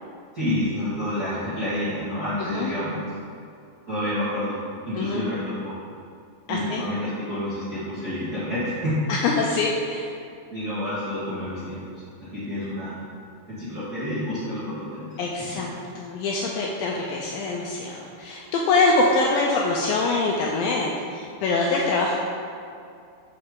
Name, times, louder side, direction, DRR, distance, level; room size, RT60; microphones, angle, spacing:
voice 1, 0.3-3.0 3.9-4.6 4.8-5.7 6.5-9.0 10.5-12.0 12.3-13.0 13.5-15.2 15.5-15.6, left 1 dB, 50° right, -13 dB, 1.1 m, -29 dB
voice 2, 2.4-2.7 5.0-5.2 6.5-6.8 9.1-10.1 15.2-15.7 16.0-22.2, left 3 dB, 85° left, -2 dB, 2.1 m, -24 dB
6.7 x 6.3 x 3.8 m, 2.4 s
omnidirectional pair, 4.6 m